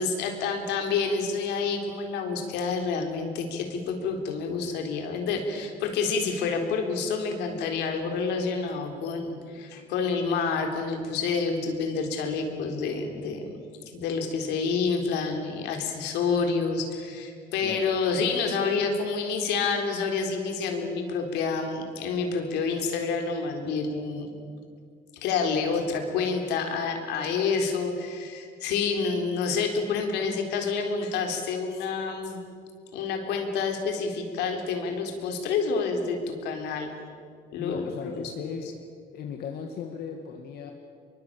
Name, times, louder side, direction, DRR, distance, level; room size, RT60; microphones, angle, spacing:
voice 1, 0.0-13.5 13.9-24.3 25.2-32.4 32.9-36.9 37.5-38.6, left 5 dB, 90° left, 4 dB, 4.0 m, -28 dB
voice 2, 17.6-17.9 37.6-38.7 39.1-40.7, left 7 dB, 65° left, 3 dB, 2.2 m, -37 dB
23.5 x 23.0 x 8.8 m, 2.1 s
cardioid pair, 110°, 17 cm